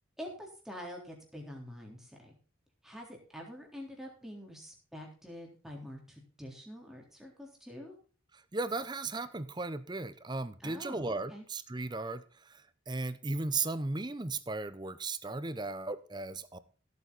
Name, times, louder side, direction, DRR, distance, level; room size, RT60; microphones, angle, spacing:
voice 1, 0.2-2.3 2.8-7.9 10.6-11.4, equal, ahead, 0 dB, 3.6 m, -46 dB
voice 2, 8.3-16.6, right 3 dB, 20° right, 14 dB, 0.7 m, -36 dB
16.0 x 8.4 x 4.1 m, 0.37 s
head